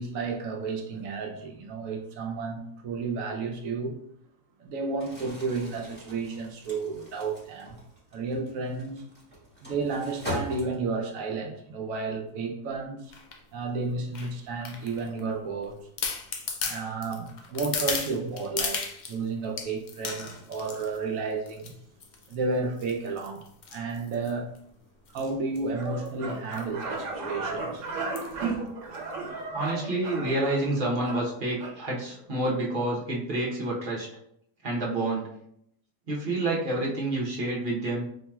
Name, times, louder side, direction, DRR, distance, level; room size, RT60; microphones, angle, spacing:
voice 1, 0.0-3.9 4.6-7.8 8.1-9.0 9.6-13.1 13.5-15.8 16.6-18.8 19.1-21.7 22.3-23.4 23.7-24.5 25.1-27.9 28.3-28.6, right 4 dB, 90° right, 1.1 m, -32 dB
Crumpling crinkling, 4.9-11.1, left 1 dB, 10° left, 1.4 m, -41 dB
sound 1, 13.1-13.4 14.1-15.2 15.6-15.7 16.0-19.2 19.6-21.0 21.5-21.7 22.0-22.3 22.8-24.6 25.1-25.3 25.5-25.6 25.8-26.1 26.5-26.7 27.0-27.1 28.1-28.4 28.9-29.0, left 5 dB, 60° left, 0.4 m, -35 dB
sound 2, 25.7-31.8, right 3 dB, 70° right, 1.2 m, -36 dB
voice 2, 29.5-34.1 34.6-35.3 36.1-38.1, right 2 dB, 45° right, 1.0 m, -28 dB
4.6 x 2.9 x 2.3 m
omnidirectional pair, 1.4 m